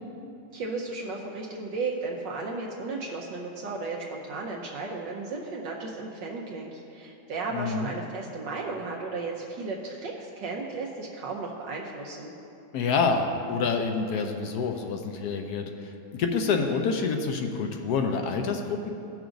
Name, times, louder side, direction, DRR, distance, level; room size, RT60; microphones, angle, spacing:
voice 1, 0.5-12.3, right 3 dB, 70° right, -1 dB, 1.4 m, -34 dB
voice 2, 7.5-7.9 12.7-18.9, left 5 dB, 70° left, 4 dB, 1.0 m, -27 dB
17.0 x 6.0 x 2.6 m, 2.8 s
omnidirectional pair, 2.1 m